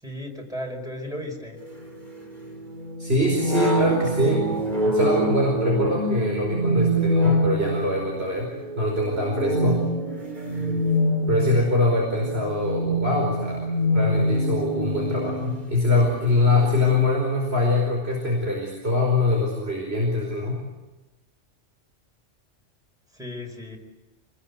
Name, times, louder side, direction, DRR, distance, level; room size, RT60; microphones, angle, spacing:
voice 1, 0.0-1.6 23.1-23.8, left 1 dB, 5° right, 0 dB, 5.1 m, -35 dB
sound 1, 1.6-16.9, equal, 40° right, 4.7 m, -26 dB
voice 2, 3.0-4.4 4.8-8.5 8.8-9.8 11.3-20.6, left 2 dB, 55° right, -1 dB, 5.4 m, -23 dB
27.5 x 20.5 x 8.4 m, 1.1 s
omnidirectional pair, 1.2 m